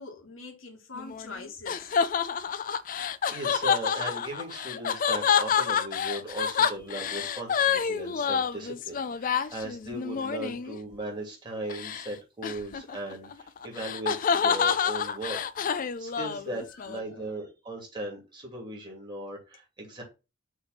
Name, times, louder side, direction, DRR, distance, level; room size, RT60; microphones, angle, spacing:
voice 1, 0.0-1.9 16.4-16.7 17.0-17.3, left 3 dB, 70° left, 1.7 m, -43 dB
sound 1, 0.9-10.8 11.7-12.1 12.4-17.0, left 7 dB, 40° left, 0.4 m, -28 dB
voice 2, 3.0-15.4 15.7-20.0, right 1 dB, 25° right, 2.7 m, -38 dB
6.4 x 3.5 x 5.9 m
head